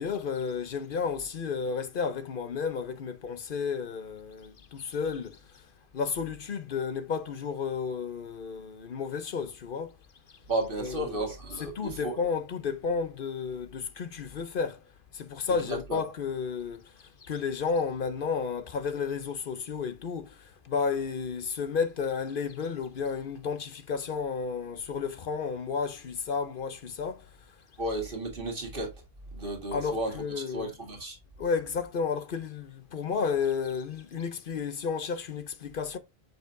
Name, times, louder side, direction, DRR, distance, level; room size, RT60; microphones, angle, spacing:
voice 1, 0.0-9.9 10.8-11.3 11.6-14.8 15.1-27.3 29.7-30.7 31.4-36.0, left 5 dB, 60° left, 0.8 m, -32 dB
voice 2, 10.5-12.1 15.7-16.0 27.8-28.9 29.3-30.1 30.5-31.2, right 1 dB, 60° right, 2.1 m, -33 dB
6.8 x 5.3 x 2.6 m
omnidirectional pair, 1.0 m